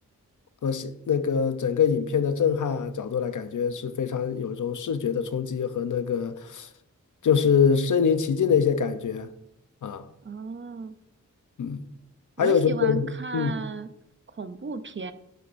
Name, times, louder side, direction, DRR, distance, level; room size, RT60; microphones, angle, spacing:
voice 1, 0.6-6.7 7.2-9.3 9.8-10.0 11.6-11.8 12.4-13.5, left 6 dB, 70° left, 0.7 m, -24 dB
voice 2, 10.2-10.9 12.4-13.9 14.3-15.1, right 4 dB, 40° right, 0.6 m, -34 dB
10.0 x 8.0 x 2.6 m
wide cardioid pair, 85°, 32 cm